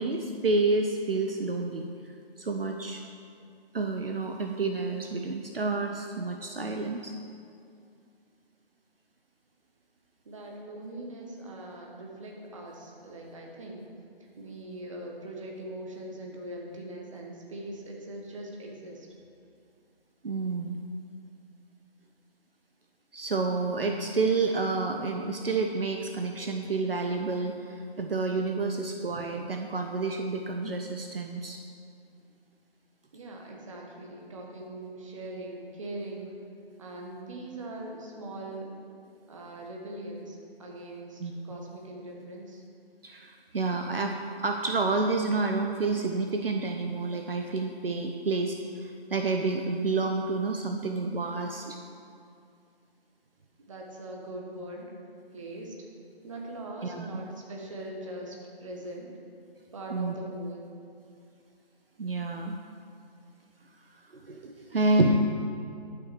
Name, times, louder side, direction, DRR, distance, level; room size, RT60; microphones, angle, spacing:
voice 1, 0.0-1.9 2.4-3.0 3.7-7.1 20.2-20.8 23.1-31.6 41.2-41.6 43.0-44.2 44.4-51.8 56.8-57.2 59.9-60.1 62.0-62.5 64.1-65.3, right 3 dB, 65° right, 4 dB, 0.8 m, -29 dB
voice 2, 10.2-13.8 14.4-19.1 33.1-36.4 36.8-38.7 39.3-41.2 41.4-42.6 53.6-54.9 55.3-55.7 56.2-59.1 59.7-60.7, right 1 dB, 30° right, -1 dB, 1.4 m, -41 dB
11.0 x 6.0 x 6.1 m, 2.4 s
figure-of-eight pair, 155°, 31 cm